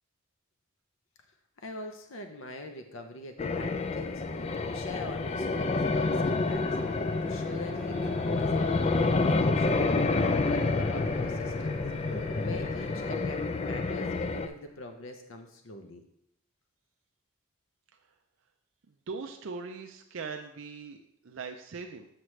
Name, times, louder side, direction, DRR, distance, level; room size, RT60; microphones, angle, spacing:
voice 1, 1.6-4.2 4.7-6.7 6.9-9.8 10.2-11.8 12.4-16.0, left 2 dB, 65° left, 5 dB, 0.7 m, -43 dB
sound 1, 3.4-14.5, left 3 dB, 30° left, 0.3 m, -28 dB
sound 2, 3.6-14.9, equal, 45° left, 1.9 m, -46 dB
voice 2, 19.1-22.1, right 4 dB, 65° right, 4 dB, 0.5 m, -40 dB
7.7 x 5.9 x 3.2 m, 0.75 s
head